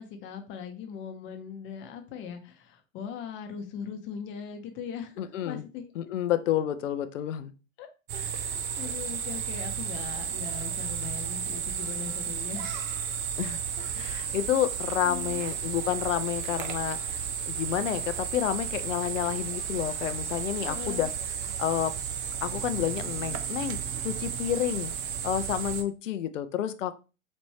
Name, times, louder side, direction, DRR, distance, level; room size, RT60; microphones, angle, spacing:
voice 1, 0.0-5.8 7.8-12.8 13.8-14.0 15.0-15.4 20.6-21.1, left 7 dB, 30° left, 6 dB, 0.8 m, -40 dB
voice 2, 5.2-5.7 6.0-7.5 13.4-13.6 14.0-21.1 21.6-21.9 22.4-23.8 24.0-24.9 25.2-26.9, left 11 dB, 70° left, 11 dB, 0.6 m, -30 dB
sound 1, 8.1-25.8, right 8 dB, 35° right, 0.6 m, -33 dB
4.2 x 2.5 x 3.3 m, 0.31 s
figure-of-eight pair, 105°, 40 cm